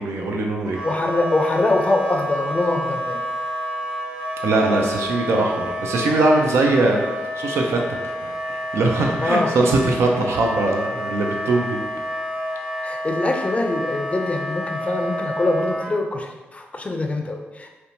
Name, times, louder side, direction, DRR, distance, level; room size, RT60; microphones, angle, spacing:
voice 1, 0.0-0.8 4.4-7.0 7.4-11.8, right 2 dB, 75° right, 1 dB, 0.4 m, -21 dB
Wind instrument woodwind instrument, 0.7-15.9, equal, 15° right, 0.6 m, -29 dB
voice 2, 0.8-3.2 9.2-9.5 12.8-17.7, left 2 dB, 30° left, 3 dB, 0.4 m, -23 dB
2.7 x 2.1 x 2.6 m, 1.1 s
supercardioid pair, 45°, 5 cm